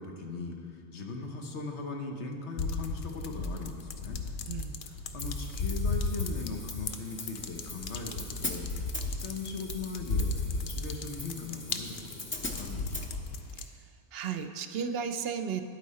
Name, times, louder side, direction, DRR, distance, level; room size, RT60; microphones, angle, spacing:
voice 1, 0.0-4.2 5.1-13.2, left 3 dB, 80° left, 3 dB, 1.3 m, -39 dB
sound 1, 2.6-13.7, left 3 dB, 60° left, 0.7 m, -35 dB
voice 2, 4.5-4.8 14.1-15.6, right 7 dB, 70° right, 8 dB, 0.7 m, -34 dB
Hi-hat, 5.2-13.1, left 1 dB, 15° left, 0.5 m, -42 dB
10.5 x 8.4 x 4.2 m, 2.3 s
omnidirectional pair, 1.1 m